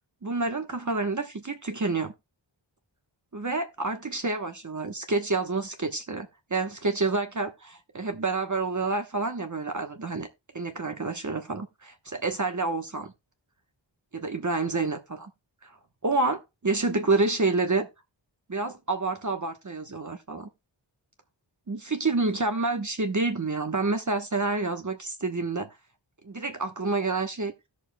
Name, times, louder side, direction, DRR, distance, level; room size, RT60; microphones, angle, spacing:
voice 1, 0.2-2.1 3.3-10.3 10.5-11.9 12.2-13.1 14.1-15.3 15.6-15.7 16.0-17.9 18.5-20.5 21.7-25.7 26.2-27.5, right 3 dB, 40° right, 1.1 m, -28 dB
17.5 x 6.5 x 2.2 m
wide cardioid pair, 55°, 46 cm